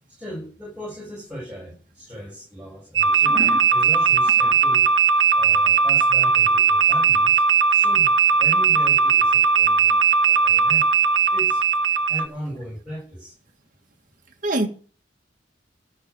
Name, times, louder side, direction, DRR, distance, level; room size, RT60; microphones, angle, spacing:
voice 1, 0.2-3.4 3.7-4.9 5.4-7.4 7.7-10.8 11.3-11.6 12.1-13.3, equal, 10° right, 7.2 m, -37 dB
sound 1, 3.0-12.3, right 6 dB, 85° right, 1.5 m, -18 dB
voice 2, 3.3-3.6 4.4-4.5 14.4-14.7, right 1 dB, 45° right, 2.2 m, -25 dB
13.5 x 7.0 x 9.9 m
head